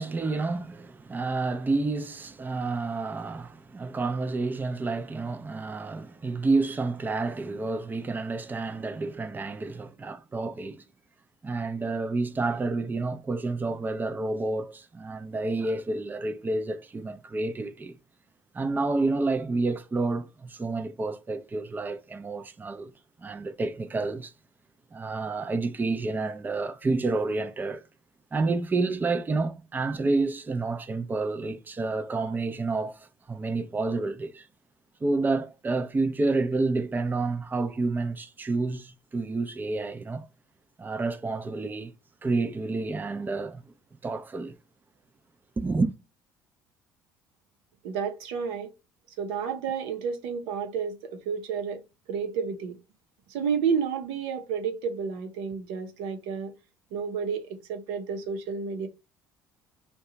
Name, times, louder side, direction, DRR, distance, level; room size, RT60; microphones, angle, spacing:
voice 1, 0.0-10.8 11.4-17.9 18.5-22.9 23.2-24.3 24.9-27.8 28.3-34.5 35.0-40.3 40.8-41.9 42.2-43.6 44.0-44.6 45.6-45.9, right 3 dB, 20° right, 0.5 m, -29 dB
voice 2, 47.8-48.7 49.2-51.8 52.1-52.7 53.3-56.5 56.9-58.9, right 6 dB, 80° right, 0.7 m, -31 dB
2.8 x 2.3 x 3.7 m
supercardioid pair, 70°, 9 cm